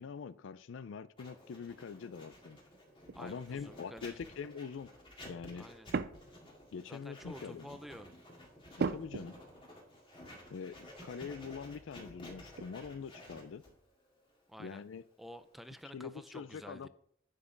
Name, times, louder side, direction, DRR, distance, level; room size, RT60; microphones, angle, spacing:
voice 1, 0.0-2.6 3.2-4.9 5.3-5.7 6.7-7.8 8.8-9.3 10.5-13.6 14.6-15.0 15.9-16.9, left 6 dB, 70° left, 16 dB, 0.4 m, -44 dB
Writing, 1.2-15.9, left 1 dB, 25° left, 2.0 m, -53 dB
voice 2, 3.1-4.3 5.5-5.9 6.9-8.1 14.5-14.8 15.2-16.9, equal, ahead, 10 dB, 0.4 m, -50 dB
sound 1, 3.1-3.3 5.9-6.6 7.1-7.4 8.8-9.7 10.1-10.2 12.5-12.9 13.2-13.8, right 4 dB, 55° right, 0.4 m, -38 dB
9.7 x 5.9 x 3.9 m, 0.65 s
head